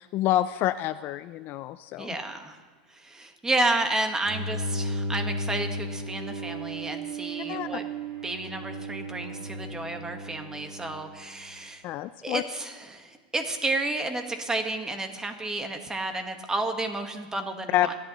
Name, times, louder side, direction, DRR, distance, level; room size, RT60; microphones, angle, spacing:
voice 1, 0.0-2.2 7.5-7.7 11.8-12.4 17.7-17.9, left 14 dB, 40° left, 13 dB, 0.3 m, -27 dB
voice 2, 2.0-2.6 2.9-7.8 8.2-11.8 12.2-17.9, right 2 dB, 10° right, 6 dB, 1.4 m, -31 dB
Bowed string instrument, 4.2-11.5, right 1 dB, 45° right, 4.8 m, -34 dB
27.0 x 11.0 x 3.0 m, 1.4 s
supercardioid pair, 130°, 5 cm